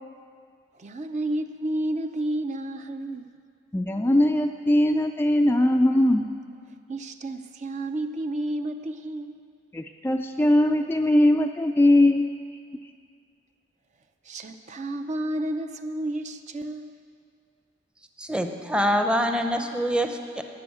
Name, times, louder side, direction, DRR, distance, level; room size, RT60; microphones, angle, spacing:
voice 1, 0.8-3.3 6.9-9.4 14.2-16.9, right 1 dB, 40° right, 8 dB, 0.5 m, -31 dB
voice 2, 3.7-6.3 9.7-12.3, left 1 dB, 10° left, 4 dB, 0.3 m, -20 dB
voice 3, 18.2-20.4, equal, 5° right, 5 dB, 0.7 m, -25 dB
12.5 x 6.2 x 9.5 m, 2.2 s
head